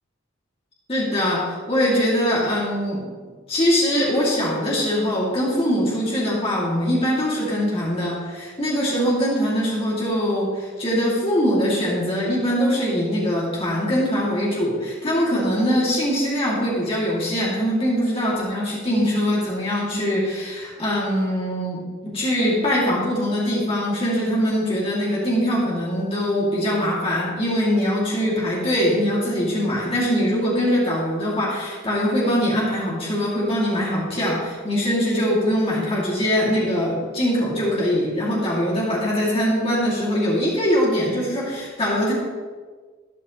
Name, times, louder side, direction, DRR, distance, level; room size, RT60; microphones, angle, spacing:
voice 1, 0.9-3.0 3.5-42.1, equal, 25° left, -6 dB, 2.7 m, -22 dB
13.5 x 10.5 x 3.2 m, 1.5 s
head